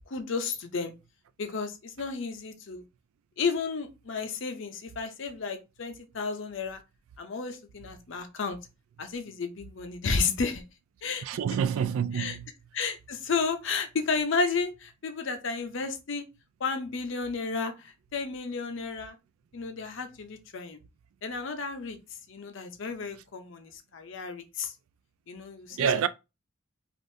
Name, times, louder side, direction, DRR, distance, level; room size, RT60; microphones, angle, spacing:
voice 1, 0.1-0.9 1.4-2.8 3.4-6.8 7.2-8.6 9.0-10.6 11.0-11.2 11.5-11.6 12.1-12.4 12.7-16.2 16.6-19.2 19.5-20.8 21.2-22.0 22.3-24.7 25.3-25.9, left 4 dB, 60° left, 0.5 m, -32 dB
voice 2, 11.2-12.5 25.7-26.1, right 7 dB, 80° right, 0.3 m, -27 dB
3.4 x 2.5 x 2.6 m
head